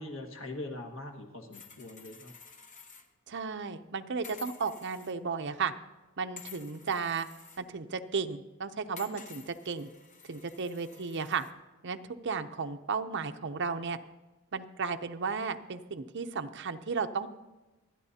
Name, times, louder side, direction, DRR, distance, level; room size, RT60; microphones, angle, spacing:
voice 1, 0.0-2.3, left 2 dB, 60° left, 3 dB, 1.6 m, -42 dB
sound 1, 1.5-3.1 3.4-3.5 4.2-5.2 6.4-7.6 9.0-11.5, left 6 dB, 35° left, 0.9 m, -51 dB
voice 2, 3.3-5.7 6.2-7.3 7.6-9.9 10.3-11.4 11.8-12.0 12.2-14.0 14.5-17.3, right 5 dB, 55° right, 7 dB, 0.6 m, -34 dB
27.0 x 9.8 x 2.8 m, 1.1 s
head